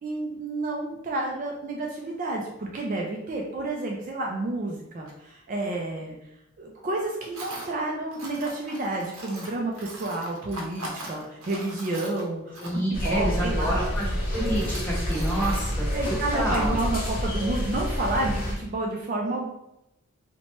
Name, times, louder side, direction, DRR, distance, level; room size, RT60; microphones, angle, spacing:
voice 1, 0.0-6.2 6.6-13.8 15.3-15.4 15.9-19.4, right 2 dB, 40° right, 0 dB, 0.3 m, -30 dB
Tools, 5.1-5.2 7.3-7.7 8.1-13.0 13.7-13.8 14.3-15.6, right 1 dB, 70° right, 0.7 m, -40 dB
voice 2, 12.6-16.8, right 1 dB, 10° left, -5 dB, 0.7 m, -29 dB
sound 1, 12.9-18.5, equal, 40° left, 0.8 m, -28 dB
2.9 x 2.1 x 2.8 m, 0.86 s
head